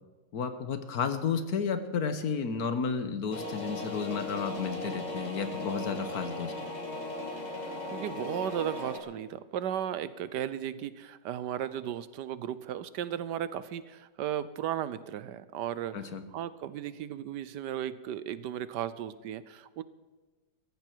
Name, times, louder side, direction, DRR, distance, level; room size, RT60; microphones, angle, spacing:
voice 1, 0.3-6.5 15.9-16.2, left 6 dB, 60° left, 10 dB, 1.4 m, -32 dB
sound 1, 3.3-9.0, left 2 dB, 25° left, 1.9 m, -37 dB
voice 2, 7.9-19.8, right 10 dB, 75° right, 15 dB, 1.2 m, -35 dB
15.5 x 14.5 x 4.5 m, 1.3 s
omnidirectional pair, 1.9 m